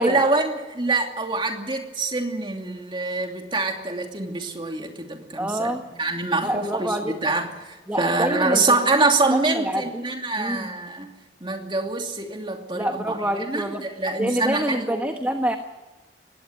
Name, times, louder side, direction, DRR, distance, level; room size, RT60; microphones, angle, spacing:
voice 1, 0.0-11.1 11.4-15.0, right 3 dB, 25° right, 3 dB, 2.7 m, -25 dB
voice 2, 5.4-5.8 6.4-7.2 7.9-9.0 9.3-10.0 10.4-10.7 12.7-13.8 14.2-15.6, equal, 10° right, 5 dB, 1.2 m, -26 dB
21.0 x 17.0 x 9.7 m, 1.1 s
head